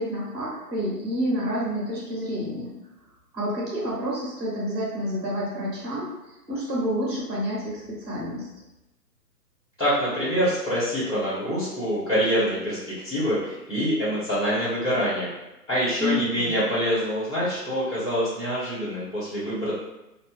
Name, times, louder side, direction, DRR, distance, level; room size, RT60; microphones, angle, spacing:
voice 1, 0.0-2.7 3.3-6.1 6.5-8.5 16.0-16.5, equal, 15° right, -6 dB, 0.9 m, -29 dB
voice 2, 9.8-15.3 15.7-19.7, equal, 5° left, -14 dB, 1.3 m, -25 dB
2.7 x 2.0 x 3.5 m, 0.96 s
figure-of-eight pair, 135°, 49 cm